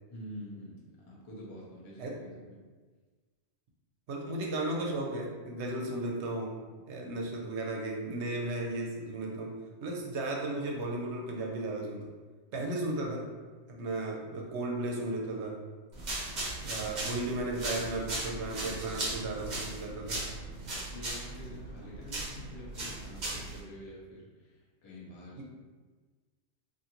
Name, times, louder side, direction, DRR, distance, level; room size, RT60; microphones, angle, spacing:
voice 1, 0.1-2.6 20.9-25.4, left 1 dB, 35° left, -5 dB, 0.5 m, -47 dB
voice 2, 4.1-6.5 6.9-9.5 9.8-12.1 12.5-13.2 13.7-15.6 16.6-20.2 25.4-25.5, right 2 dB, 75° right, 0 dB, 0.8 m, -35 dB
sound 1, 15.9-23.6, right 2 dB, 45° right, 0.7 m, -38 dB
2.5 x 2.5 x 2.8 m, 1.4 s
omnidirectional pair, 1.2 m